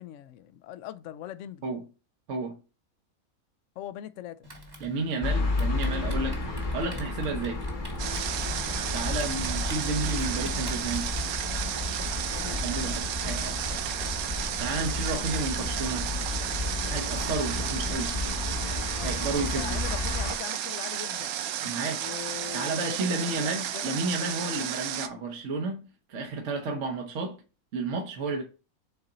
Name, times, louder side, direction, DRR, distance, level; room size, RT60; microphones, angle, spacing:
voice 1, 0.0-1.7 3.8-4.5 8.6-8.7 12.3-12.6 15.2-15.3 18.9-21.5 22.0-24.0, left 12 dB, 65° left, 0.8 m, -41 dB
voice 2, 2.3-2.6 4.8-7.6 8.9-11.1 12.4-13.6 14.6-16.1 16.8-18.2 18.9-19.8 21.6-22.0 22.5-27.4 27.7-28.4, right 3 dB, 60° right, 1.2 m, -32 dB
Typing, 4.4-11.3, equal, 20° right, 1.1 m, -45 dB
sound 1, 5.2-20.3, left 2 dB, 40° left, 1.1 m, -32 dB
Water, 8.0-25.1, right 10 dB, 85° right, 1.1 m, -33 dB
6.8 x 4.2 x 3.8 m
omnidirectional pair, 1.5 m